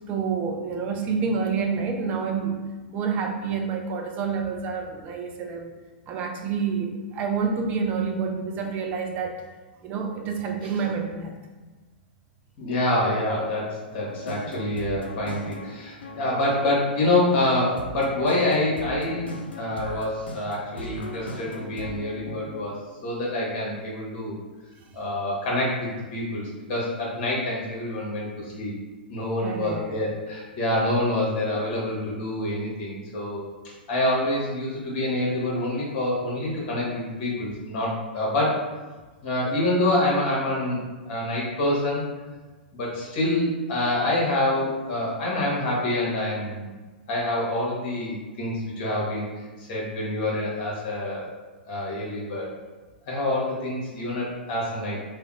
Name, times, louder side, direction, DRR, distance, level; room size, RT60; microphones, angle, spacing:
voice 1, 0.1-2.6 2.9-5.7 6.1-9.4 9.8-11.3 29.4-30.0, right 5 dB, 30° right, 3 dB, 0.3 m, -28 dB
voice 2, 12.6-24.4 24.9-28.7 29.1-33.4 33.9-38.6 39.2-40.8 41.1-42.0 42.7-46.7 47.1-49.2 49.6-51.3 51.7-52.5 53.1-55.0, left 1 dB, 45° left, -4 dB, 1.0 m, -26 dB
sound 1, 14.1-22.6, left 1 dB, 75° left, 0.4 m, -38 dB
2.7 x 2.1 x 2.5 m, 1.3 s
figure-of-eight pair, 105°, 6 cm